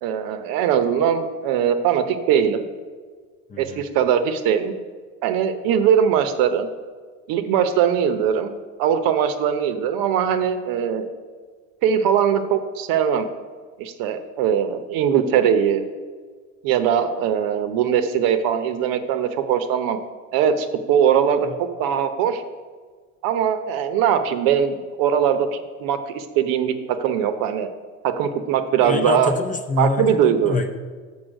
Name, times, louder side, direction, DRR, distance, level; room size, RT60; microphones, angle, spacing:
voice 1, 0.0-2.6 3.6-4.7 5.2-6.7 7.3-11.1 11.8-13.3 13.8-15.8 16.6-20.0 20.3-22.4 23.2-26.7 27.0-27.7 28.0-29.4 29.8-30.6, right 8 dB, 65° right, 8 dB, 0.8 m, -21 dB
voice 2, 3.5-3.8 21.5-21.6 28.7-30.8, left 3 dB, 20° left, 5 dB, 0.6 m, -26 dB
6.3 x 5.5 x 6.4 m, 1.5 s
supercardioid pair, 115°, 36 cm